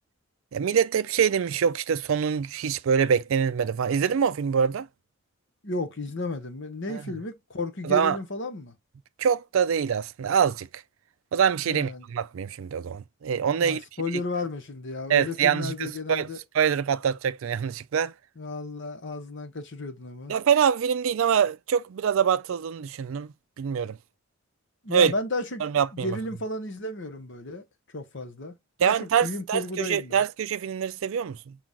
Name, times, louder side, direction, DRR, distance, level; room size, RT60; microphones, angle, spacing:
voice 1, 0.5-4.9 6.9-7.0 7.8-8.2 9.2-10.8 11.3-13.8 15.1-16.3 16.5-18.1 20.3-23.3 23.6-24.0 24.9-25.1 25.6-26.2 28.8-31.6, right 7 dB, 65° right, 0.4 m, -24 dB
voice 2, 5.6-8.7 11.7-12.1 13.6-16.4 18.4-20.3 24.8-25.6 25.9-27.6 27.9-30.2, left 2 dB, 55° left, 1.0 m, -33 dB
5.9 x 2.4 x 3.6 m
head